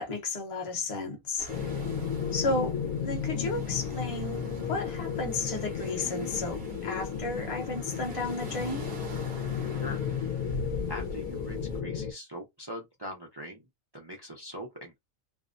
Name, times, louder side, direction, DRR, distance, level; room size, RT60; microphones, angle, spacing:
voice 1, 0.0-1.7 2.3-8.8, left 3 dB, 30° left, 0.8 m, -33 dB
sound 1, 1.4-11.8, equal, 55° right, 0.8 m, -44 dB
sound 2, 1.5-12.1, left 7 dB, 85° left, 1.0 m, -34 dB
voice 2, 10.9-13.6 13.9-15.0, equal, 35° right, 0.4 m, -42 dB
2.6 x 2.1 x 2.4 m
omnidirectional pair, 1.5 m